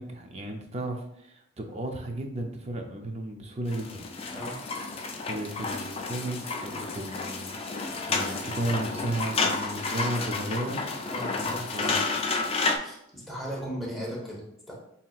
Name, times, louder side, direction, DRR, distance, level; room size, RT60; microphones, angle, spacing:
voice 1, 0.0-4.0 5.3-10.8 11.3-12.0, right 1 dB, 30° right, 3 dB, 0.5 m, -34 dB
sound 1, 3.7-12.8, left 3 dB, 30° left, 0.3 m, -31 dB
voice 2, 11.1-11.9 12.6-14.7, equal, ahead, -4 dB, 1.0 m, -37 dB
5.6 x 2.8 x 2.4 m, 0.76 s
head